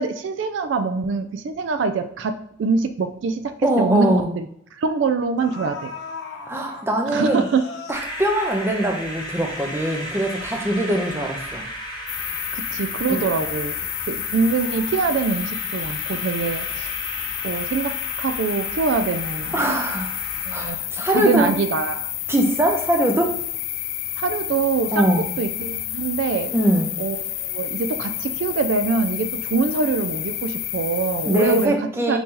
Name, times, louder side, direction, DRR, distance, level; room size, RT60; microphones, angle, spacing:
voice 1, 0.0-5.9 7.1-7.6 12.3-13.8 14.1-16.9 17.4-19.7 20.5-20.8 21.0-22.1 24.2-26.5 27.0-31.7 32.1-32.2, right 4 dB, 65° right, 8 dB, 0.3 m, -24 dB
sound 1, 3.2-3.3 3.7-3.9 4.9-5.0 5.4-9.3 9.6-9.7, left 4 dB, 60° left, 0.7 m, -37 dB
voice 2, 3.6-4.3 6.5-7.4 7.9-11.6 13.1-13.2 19.5-20.1 20.5-21.5 22.3-23.3 24.9-25.3 26.5-26.9 31.3-32.2, right 1 dB, 10° right, 2 dB, 0.5 m, -22 dB
sound 2, 7.9-20.7, equal, 20° left, 1.0 m, -35 dB
sound 3, 12.1-31.7, left 13 dB, 85° left, 0.4 m, -30 dB
4.3 x 2.7 x 3.6 m, 0.69 s
head